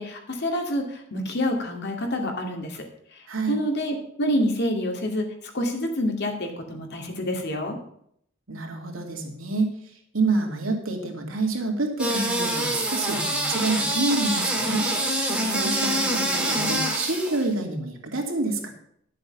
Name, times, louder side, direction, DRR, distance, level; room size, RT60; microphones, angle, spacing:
voice 1, 0.0-2.8 3.5-5.3 5.5-7.8, equal, 55° left, 3 dB, 2.4 m, -27 dB
voice 2, 8.5-9.7 10.1-14.9 15.5-18.7, right 2 dB, 85° right, 2 dB, 2.5 m, -27 dB
sound 1, 12.0-17.4, right 1 dB, 5° right, 2.3 m, -25 dB
11.5 x 7.6 x 5.9 m, 0.68 s
head